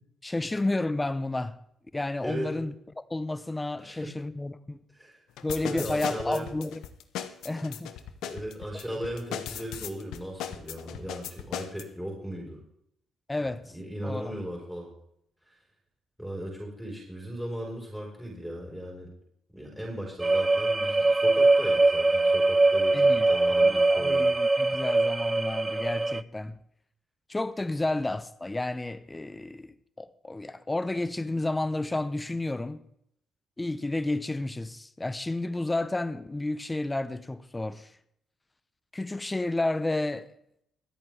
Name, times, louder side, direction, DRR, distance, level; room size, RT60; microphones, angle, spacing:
voice 1, 0.2-1.6 1.9-4.8 5.4-6.8 7.4-7.9 13.3-13.7 14.0-14.3 22.9-26.6 27.3-32.8 33.6-37.9 38.9-40.3, left 2 dB, 15° left, 0.9 m, -31 dB
voice 2, 2.2-2.6 3.8-4.2 4.9-5.2 5.6-6.5 8.2-12.6 13.4-14.9 15.4-15.6 16.2-19.1 19.5-24.3, equal, ahead, 4.9 m, -37 dB
sound 1, 5.4-11.8, left 10 dB, 85° left, 1.0 m, -37 dB
sound 2, 20.2-26.2, right 2 dB, 20° right, 0.4 m, -22 dB
25.0 x 8.6 x 3.5 m
cardioid pair, 90°, 0 cm